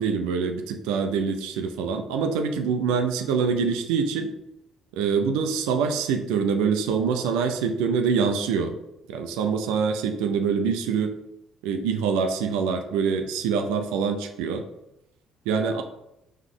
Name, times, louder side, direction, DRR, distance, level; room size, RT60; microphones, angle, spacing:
voice 1, 0.0-4.3 4.9-8.7 9.1-11.1 11.6-14.7 15.5-15.8, right 6 dB, 90° right, 5 dB, 0.4 m, -25 dB
3.8 x 3.0 x 3.7 m, 0.85 s
supercardioid pair, 75°, 0 cm